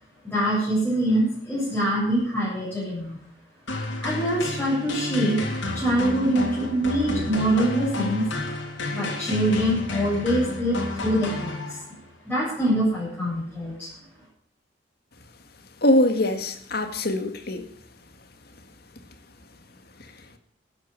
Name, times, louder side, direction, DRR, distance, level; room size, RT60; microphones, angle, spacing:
voice 1, 0.2-3.2 4.0-8.3 8.9-11.8 12.3-13.9, right 1 dB, 10° left, -9 dB, 8.0 m, -24 dB
sound 1, 3.7-12.0, left 2 dB, 90° left, 3.5 m, -31 dB
voice 2, 15.8-17.6, left 1 dB, 60° left, 7 dB, 1.9 m, -22 dB
13.0 x 9.7 x 7.7 m, 0.65 s
head